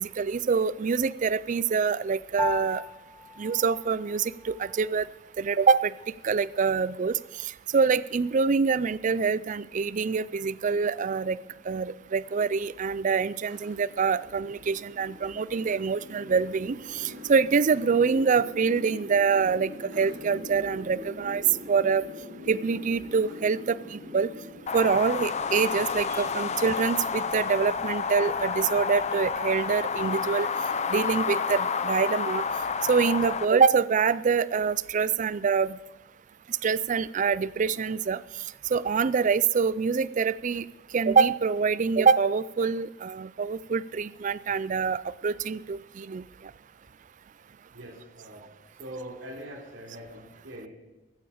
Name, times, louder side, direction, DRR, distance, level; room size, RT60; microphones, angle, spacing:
voice 1, 0.0-2.8 3.4-5.0 5.4-5.9 6.2-7.1 7.7-11.4 11.7-21.4 21.7-22.0 22.5-24.3 24.7-30.5 30.9-32.4 32.9-35.8 36.6-38.2 38.7-40.6 40.9-46.2, right 5 dB, 40° right, 19 dB, 0.4 m, -25 dB
Piano, 2.4-12.0, left 3 dB, 5° left, 0.9 m, -41 dB
sound 1, 10.3-26.2, left 2 dB, 65° right, 4.4 m, -45 dB
sound 2, 24.7-33.5, left 5 dB, 35° left, 0.6 m, -30 dB
voice 2, 47.7-48.4 48.8-50.7, equal, 90° right, 0 dB, 3.5 m, -42 dB
14.5 x 9.7 x 7.1 m, 1.1 s
head